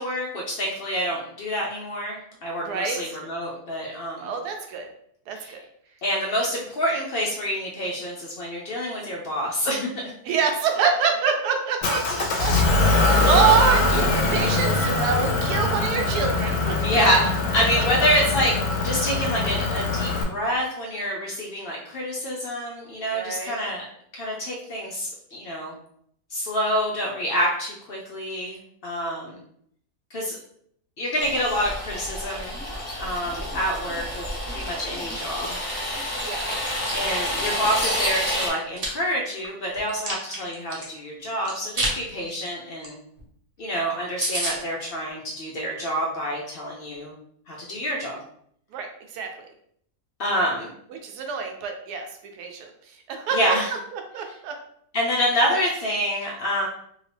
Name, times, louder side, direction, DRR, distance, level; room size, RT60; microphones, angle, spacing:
voice 1, 0.0-4.3 5.3-5.5 6.0-10.0 16.8-18.5 18.8-23.8 24.1-25.7 26.3-28.6 28.8-29.4 30.1-30.4 31.0-32.6 33.0-35.6 36.9-43.0 43.6-47.1 47.5-48.2 50.2-50.7 53.3-53.7 54.9-56.7, equal, 85° left, -2 dB, 0.5 m, -27 dB
voice 2, 2.6-3.2 4.2-4.9 5.3-5.6 10.2-16.8 17.8-17.9 23.1-23.5 36.2-36.5 37.1-37.3 48.7-49.5 50.9-52.1 52.4-52.7 53.1-53.6 53.9-54.5, right 6 dB, 85° right, 4 dB, 1.2 m, -26 dB
Motor vehicle (road) / Engine, 11.8-20.2, left 3 dB, 65° left, 0.8 m, -22 dB
sound 1, 31.2-38.5, left 1 dB, 25° left, 0.6 m, -29 dB
Chewing mastication, 38.5-38.9 39.4-40.9 41.4-41.9 42.3-42.5 42.8-42.9 43.2-43.3 43.6-43.7 43.9-44.0 44.2-44.5, right 1 dB, 40° right, 0.5 m, -28 dB
2.8 x 2.7 x 3.2 m, 0.67 s
omnidirectional pair, 1.7 m